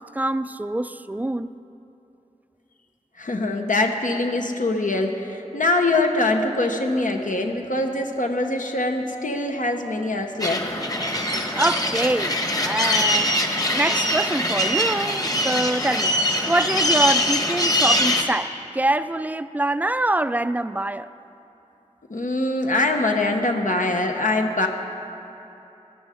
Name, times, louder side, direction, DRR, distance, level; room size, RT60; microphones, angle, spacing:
voice 1, 0.0-1.5 11.3-13.4 13.7-16.2 16.5-21.1, right 1 dB, 10° right, 0.3 m, -25 dB
voice 2, 3.2-10.7 22.1-24.7, left 2 dB, 80° left, 0.9 m, -23 dB
sound 1, 10.4-18.2, left 1 dB, 30° left, 1.2 m, -22 dB
14.0 x 12.5 x 5.0 m
wide cardioid pair, 55°, 13 cm